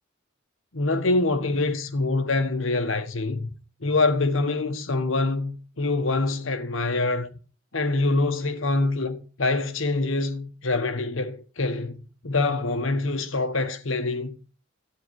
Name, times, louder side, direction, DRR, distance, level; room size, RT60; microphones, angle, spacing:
voice 1, 0.7-3.5 3.8-7.3 7.7-14.4, left 3 dB, 70° left, 1.3 m, -25 dB
13.0 x 8.8 x 4.8 m
head